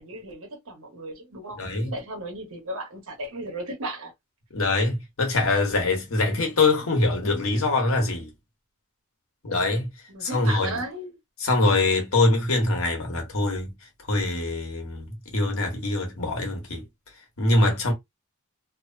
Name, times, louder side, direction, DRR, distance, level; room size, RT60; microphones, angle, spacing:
voice 1, 0.0-4.1 10.1-11.1, right 1 dB, 80° right, 1.2 m, -35 dB
voice 2, 1.5-1.9 4.5-8.3 9.4-9.9 10.2-10.8 11.4-13.7 14.1-16.8 17.4-17.9, left 2 dB, 75° left, 1.1 m, -23 dB
2.9 x 2.0 x 2.5 m
head